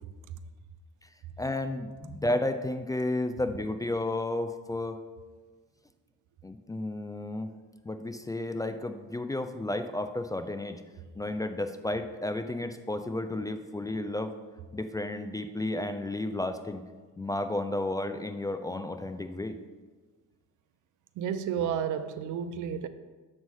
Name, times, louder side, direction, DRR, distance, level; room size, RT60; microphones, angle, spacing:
voice 1, 1.4-5.0 6.4-7.5 7.9-10.8 11.2-14.3 14.7-16.8 17.2-19.6, left 2 dB, 10° left, 8 dB, 0.3 m, -32 dB
voice 2, 21.2-22.9, right 8 dB, 80° right, 11 dB, 0.5 m, -31 dB
7.3 x 3.2 x 5.4 m, 1.4 s
cardioid pair, 90°, 30 cm